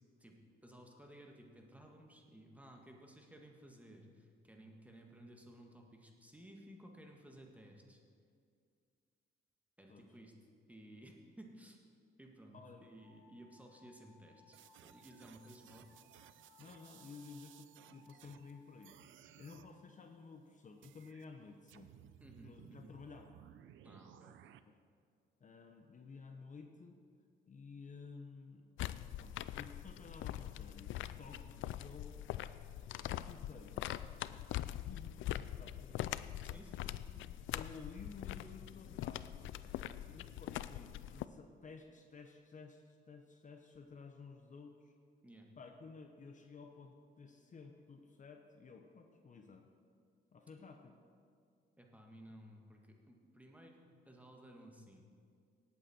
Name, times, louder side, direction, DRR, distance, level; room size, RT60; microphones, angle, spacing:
voice 1, 0.2-8.0 9.8-10.3 10.7-11.8 12.2-15.9 19.2-19.4 22.2-22.9 23.8-24.5 31.2-31.6 36.3-37.4 39.7-40.0 45.2-45.5 51.8-53.8 54.1-55.0, right 1 dB, 5° right, 1 dB, 1.9 m, -57 dB
voice 2, 12.5-12.9 13.3-13.4 16.6-21.9 22.4-23.4 24.7-24.8 25.4-27.0 27.5-28.7 29.0-32.2 33.1-33.8 34.8-36.1 36.5-36.6 37.4-39.4 40.0-44.9 45.6-49.7 50.3-51.0, left 4 dB, 40° left, 4 dB, 1.0 m, -54 dB
sound 1, 13.0-18.7, left 3 dB, 45° right, 2.9 m, -68 dB
sound 2, 14.5-18.5 18.8-19.7 20.8-21.2 21.7-24.6, right 12 dB, 80° right, 0.6 m, -60 dB
sound 3, 28.8-41.3, left 13 dB, 80° left, 0.4 m, -43 dB
18.0 x 8.5 x 4.4 m, 2.2 s
cardioid pair, 90°, 20 cm